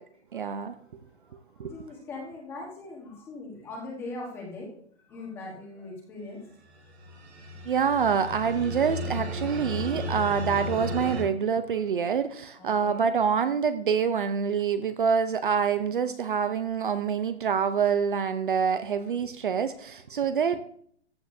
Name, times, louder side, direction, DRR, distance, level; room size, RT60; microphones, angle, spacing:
voice 1, 0.3-0.7 1.6-1.7 7.7-20.6, right 7 dB, 50° right, 11 dB, 0.6 m, -26 dB
voice 2, 1.6-4.8 5.1-6.4 7.1-7.2 12.6-13.1, left 2 dB, 5° left, -2 dB, 1.2 m, -40 dB
sound 1, 6.7-11.2, left 1 dB, 65° right, 2.0 m, -34 dB
15.0 x 8.8 x 2.6 m, 0.62 s
hypercardioid pair, 180°, 34 cm